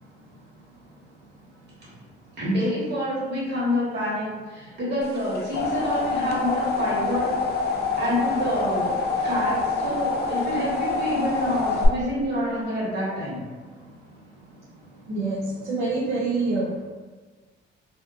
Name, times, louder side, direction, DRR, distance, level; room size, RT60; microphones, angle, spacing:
voice 1, 2.4-7.3 8.0-13.4, equal, 60° right, -7 dB, 1.4 m, -27 dB
sound 1, 5.2-11.9, left 3 dB, 55° left, 0.4 m, -26 dB
voice 2, 15.1-15.4 15.7-16.7, right 3 dB, 85° right, -7 dB, 0.5 m, -25 dB
2.6 x 2.3 x 2.4 m, 1.4 s
cardioid pair, 90°, 20 cm